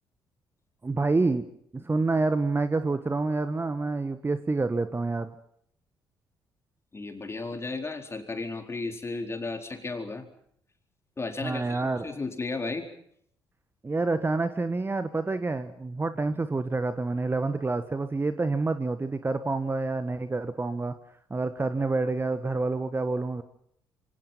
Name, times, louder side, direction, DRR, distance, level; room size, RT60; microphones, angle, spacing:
voice 1, 0.8-1.4 1.7-5.3 11.4-12.1 13.8-20.9 21.3-23.4, right 3 dB, 20° right, 11 dB, 1.6 m, -28 dB
voice 2, 6.9-10.3 11.2-12.9, left 3 dB, 25° left, 5 dB, 4.3 m, -34 dB
27.0 x 25.0 x 5.8 m, 0.67 s
figure-of-eight pair, 45°, 11 cm